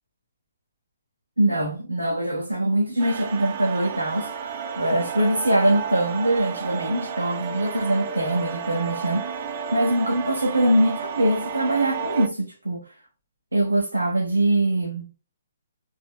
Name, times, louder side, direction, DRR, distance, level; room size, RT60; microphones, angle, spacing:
voice 1, 1.4-4.3 4.8-9.3 9.7-12.8 13.5-15.1, right 1 dB, 80° right, 1.0 m, -23 dB
sound 1, 3.0-12.3, right 6 dB, 40° right, 0.8 m, -32 dB
5.5 x 3.0 x 2.2 m
figure-of-eight pair, 125°, 0 cm